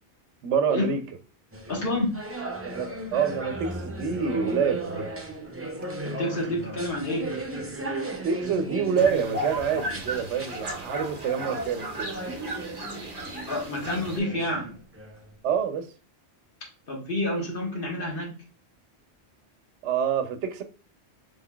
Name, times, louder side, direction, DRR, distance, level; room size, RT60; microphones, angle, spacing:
voice 1, 0.4-1.0 2.6-5.1 8.2-12.2 15.4-15.9 19.8-20.6, right 7 dB, 90° right, 0.9 m, -27 dB
sound 1, 1.5-15.4, right 2 dB, 20° right, 0.4 m, -36 dB
voice 2, 1.7-2.2 6.0-7.4 13.5-14.7 16.9-18.3, left 1 dB, 55° left, 1.4 m, -29 dB
sound 2, 9.0-14.2, equal, 50° right, 1.0 m, -35 dB
3.7 x 3.3 x 2.2 m
omnidirectional pair, 1.1 m